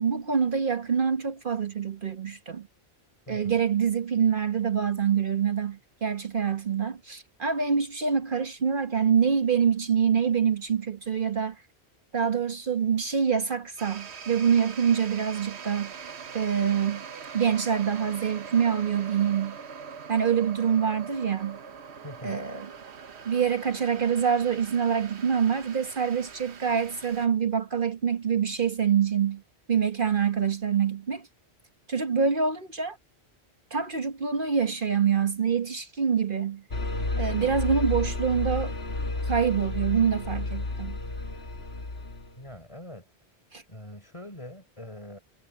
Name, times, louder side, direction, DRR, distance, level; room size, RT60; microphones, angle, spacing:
voice 1, 0.0-2.7 3.3-11.6 12.1-15.9 16.3-17.0 17.3-19.6 20.1-21.6 22.2-22.7 23.2-29.4 29.7-31.3 31.9-33.0 33.7-36.6 37.2-38.7 39.3-41.0 43.5-43.6, right 7 dB, 55° right, 1.3 m, -25 dB
voice 2, 3.3-3.6 22.0-22.5 42.4-43.1 43.7-45.2, left 1 dB, 30° left, 4.6 m, -43 dB
sound 1, 13.8-27.3, right 6 dB, 80° right, 1.3 m, -43 dB
sound 2, 36.7-42.4, left 2 dB, 70° left, 2.0 m, -31 dB
omnidirectional pair, 1.1 m